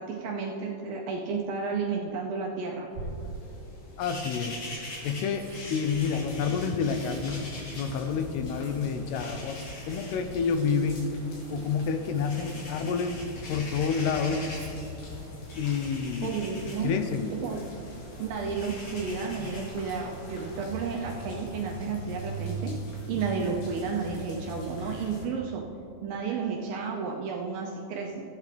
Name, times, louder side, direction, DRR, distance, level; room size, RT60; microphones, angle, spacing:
voice 1, 0.0-2.9 16.2-17.0 17.3-17.6 18.2-22.7 23.1-25.6 26.0-28.2, right 5 dB, 80° right, 0 dB, 2.2 m, -32 dB
Tearing, 1.5-1.9 2.9-3.7 4.4-9.0 9.2-13.5 13.8-14.7 16.6-16.9 17.2-17.3, right 3 dB, 30° right, 3.0 m, -47 dB
sound 1, 3.0-21.3, left 1 dB, 50° left, 1.7 m, -45 dB
voice 2, 4.0-7.4 7.7-9.6 9.9-11.1 11.5-13.2 13.5-14.4 15.6-16.3 16.8-17.3 19.4-19.5, left 6 dB, 80° left, 7 dB, 2.6 m, -29 dB
sound 2, 5.8-25.2, equal, 65° left, 3.5 m, -42 dB
15.0 x 8.5 x 3.3 m, 2.6 s
omnidirectional pair, 4.9 m